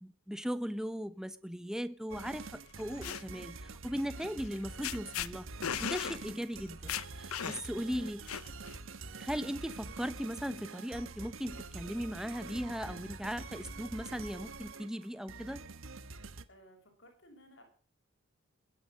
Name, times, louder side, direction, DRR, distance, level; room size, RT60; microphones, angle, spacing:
voice 1, 0.0-5.5 5.8-8.3 9.2-15.6, equal, 5° right, 0.8 m, -38 dB
sound 1, 2.1-16.4, right 3 dB, 70° right, 1.2 m, -46 dB
sound 2, 2.7-3.2 4.4-4.6 4.8-5.3 5.6-6.2 6.5-6.6 6.9-7.8 8.3-8.7, left 9 dB, 85° left, 0.8 m, -36 dB
voice 2, 16.5-17.6, equal, 55° left, 5.7 m, -58 dB
21.5 x 10.0 x 6.4 m
head